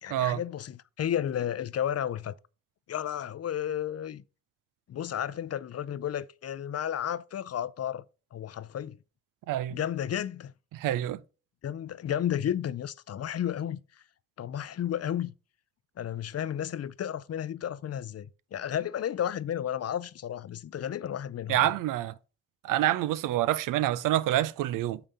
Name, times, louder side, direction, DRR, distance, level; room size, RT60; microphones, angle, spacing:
voice 1, 0.0-2.3 2.9-4.2 4.9-8.0 8.3-9.0 9.7-10.5 11.6-14.0 14.4-15.3 16.0-21.7, left 10 dB, 50° left, 0.5 m, -32 dB
voice 2, 9.5-9.8 10.7-11.2 21.5-22.1 22.6-25.0, right 13 dB, 80° right, 0.5 m, -27 dB
6.8 x 5.5 x 5.4 m
hypercardioid pair, 40°, 32 cm